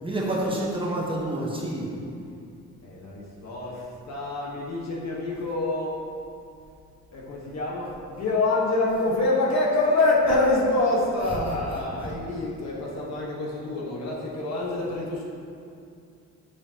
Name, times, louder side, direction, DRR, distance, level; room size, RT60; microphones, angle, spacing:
voice 1, 0.0-1.9 11.4-11.5 12.0-12.1, right 1 dB, 15° right, -4 dB, 1.2 m, -28 dB
voice 2, 2.8-6.0 7.1-15.2, left 2 dB, 60° left, -4 dB, 1.3 m, -26 dB
7.0 x 5.1 x 2.9 m, 2.5 s
cardioid pair, 90°, 30 cm